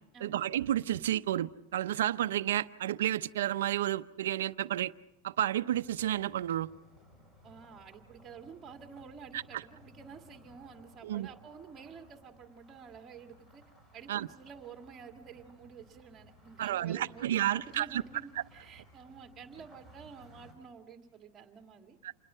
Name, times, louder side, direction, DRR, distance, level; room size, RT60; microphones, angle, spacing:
voice 1, 0.2-4.9 5.2-6.7 9.3-9.6 11.0-11.3 14.1-14.3 16.6-18.0 22.0-22.1, right 12 dB, 80° right, 13 dB, 0.7 m, -31 dB
sound 1, 5.7-20.5, equal, 15° left, 5.9 m, -59 dB
voice 2, 7.4-13.6 13.9-22.0, right 6 dB, 20° right, 4 dB, 2.1 m, -50 dB
28.0 x 21.0 x 5.6 m, 0.91 s
supercardioid pair, 160°, 0 cm